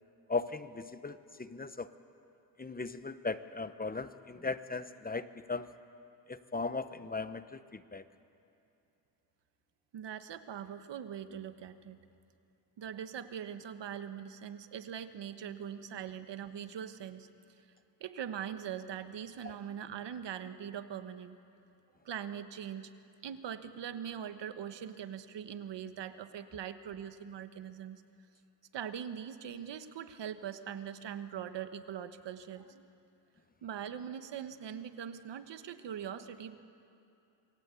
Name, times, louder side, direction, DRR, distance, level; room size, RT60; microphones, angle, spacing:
voice 1, 0.3-1.9 2.6-5.7 6.3-8.0 19.4-19.6, left 3 dB, 20° left, 12 dB, 0.9 m, -38 dB
voice 2, 9.9-12.0 12.8-17.3 18.0-21.4 22.0-22.9 23.2-28.0 28.7-32.9 33.6-36.5, right 9 dB, 80° right, 10 dB, 1.4 m, -42 dB
27.5 x 22.5 x 8.4 m, 2.6 s
cardioid pair, 110°, 42 cm